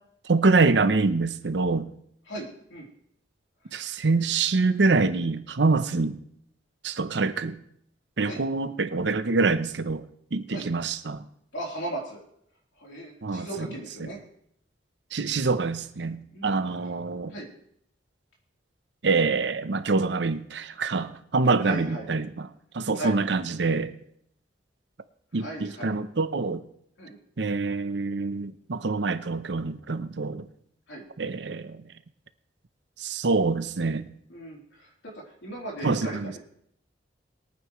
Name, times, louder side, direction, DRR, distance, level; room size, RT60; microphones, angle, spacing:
voice 1, 0.3-1.9 3.7-6.2 6.8-7.6 8.2-10.0 10.3-11.2 13.2-13.7 14.0-14.1 15.1-17.3 19.0-22.5 22.7-23.9 25.3-26.6 27.4-30.4 31.2-31.8 33.0-34.1 35.8-36.4, right 3 dB, 70° right, 0.7 m, -25 dB
voice 2, 2.3-2.9 8.2-8.4 10.5-10.7 11.5-12.2 12.8-14.2 16.3-16.6 17.3-17.5 21.6-22.1 22.9-23.2 25.3-26.0 27.0-27.2 30.9-31.1 34.3-36.4, right 1 dB, 85° left, 3.6 m, -37 dB
22.0 x 9.3 x 3.1 m
head